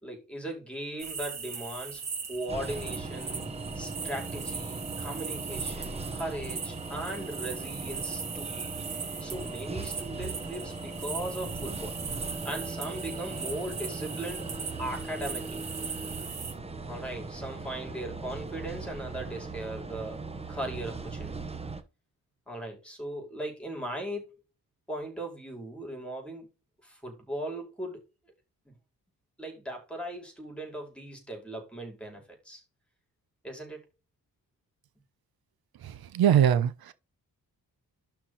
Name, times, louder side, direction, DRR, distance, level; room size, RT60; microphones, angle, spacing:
voice 1, 0.0-3.4 3.7-8.5 9.2-12.0 12.4-14.5 14.8-15.6 16.9-20.2 20.5-21.3 22.5-24.2 24.9-26.5 26.8-28.0 28.7-28.8 29.4-32.6 33.4-33.8, right 1 dB, 5° left, 4.9 m, -38 dB
sound 1, 1.0-16.5, right 5 dB, 45° right, 2.8 m, -39 dB
sound 2, 2.5-21.8, right 3 dB, 15° right, 1.3 m, -39 dB
voice 2, 36.1-36.9, right 9 dB, 85° right, 0.9 m, -21 dB
11.5 x 4.6 x 4.1 m
wide cardioid pair, 165°, 36 cm